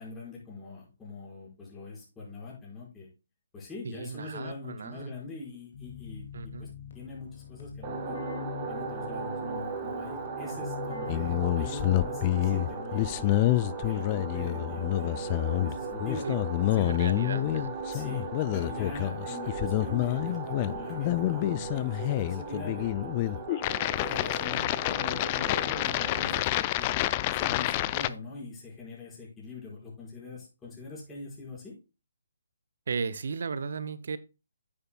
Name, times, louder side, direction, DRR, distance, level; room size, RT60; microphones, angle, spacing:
voice 1, 0.0-3.1 3.5-6.3 6.6-6.7 6.9-8.2 8.7-13.4 13.8-16.3 16.7-17.0 17.9-18.3 18.5-23.4 23.9-26.9 27.3-31.7, left 4 dB, 10° left, -6 dB, 4.8 m, -42 dB
voice 2, 3.8-5.1 6.3-6.7 16.2-16.4 16.7-17.8 32.9-34.2, right 5 dB, 55° right, 15 dB, 0.7 m, -35 dB
Keyboard (musical), 5.7-12.6, left 8 dB, 50° left, 2.2 m, -44 dB
sound 1, 7.8-26.4, right 5 dB, 30° right, 1.6 m, -38 dB
sound 2, 11.1-28.1, left 16 dB, 30° left, 0.4 m, -28 dB
9.7 x 8.7 x 2.2 m, 0.28 s
figure-of-eight pair, 140°, 0 cm